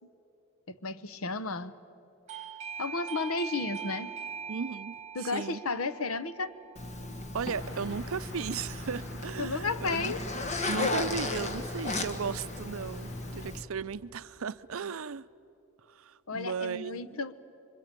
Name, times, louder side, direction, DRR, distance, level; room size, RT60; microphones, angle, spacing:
voice 1, 0.7-1.8 2.8-4.1 5.1-6.5 9.4-10.2 16.3-17.4, left 3 dB, 75° left, 1.0 m, -33 dB
Doorbell, 2.3-8.8, right 7 dB, 30° right, 1.7 m, -43 dB
voice 2, 4.5-5.6 7.3-10.1 10.7-15.2 15.9-17.2, right 6 dB, 70° right, 0.5 m, -36 dB
Zipper (clothing), 6.8-13.6, left 2 dB, 30° left, 1.5 m, -35 dB
sound 1, 7.5-13.5, equal, 55° left, 3.8 m, -47 dB
26.5 x 24.5 x 9.0 m
head